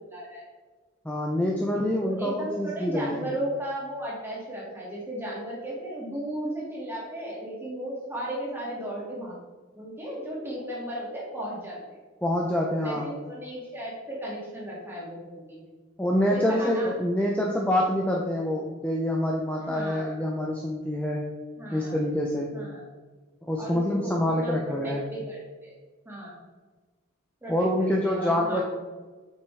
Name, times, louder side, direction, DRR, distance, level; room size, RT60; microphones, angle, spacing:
voice 1, 0.1-0.4 2.0-9.4 9.8-12.0 12.8-15.6 16.3-16.9 19.7-20.2 21.6-22.0 22.5-22.9 23.6-25.7 26.1-26.4 27.4-28.6, right 1 dB, 10° right, -5 dB, 2.1 m, -35 dB
voice 2, 1.0-3.2 12.2-13.0 16.0-21.2 21.7-22.5 23.4-25.0 27.5-28.6, left 1 dB, 5° left, -1 dB, 0.6 m, -26 dB
8.0 x 5.9 x 3.4 m, 1.3 s
head